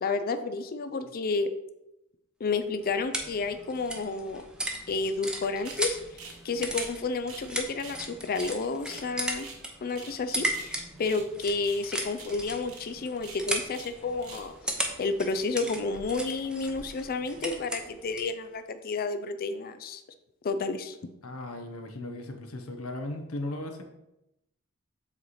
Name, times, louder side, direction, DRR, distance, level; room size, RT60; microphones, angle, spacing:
voice 1, 0.0-1.5 2.4-4.4 4.9-6.0 6.4-9.5 9.8-14.5 15.0-20.0 20.4-21.0, left 3 dB, 45° left, 9 dB, 0.4 m, -31 dB
sound 1, 2.5-18.4, right 1 dB, 5° right, 0.7 m, -37 dB
sound 2, 5.6-5.8 6.2-6.4 6.6-7.5 7.8-8.0 8.3-9.6 9.9-10.2 10.4-11.3 11.6-11.9 12.1-12.3 12.6-12.8 13.2-13.9 14.2-14.5, right 4 dB, 75° right, 1.2 m, -46 dB
voice 2, 21.2-23.8, left 2 dB, 75° left, 5 dB, 0.9 m, -37 dB
7.5 x 3.1 x 4.2 m, 0.88 s
head